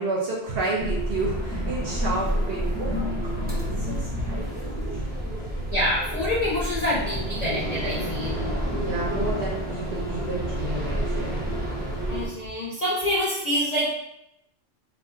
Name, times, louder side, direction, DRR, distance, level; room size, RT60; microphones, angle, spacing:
voice 1, 0.0-5.1 8.7-11.3, right 2 dB, 60° right, -3 dB, 0.6 m, -31 dB
sound 1, 0.8-12.3, equal, 15° right, 0.4 m, -29 dB
voice 2, 5.7-8.4 12.1-13.9, left 1 dB, 50° left, -7 dB, 0.5 m, -26 dB
2.4 x 2.2 x 3.6 m, 0.82 s
omnidirectional pair, 1.4 m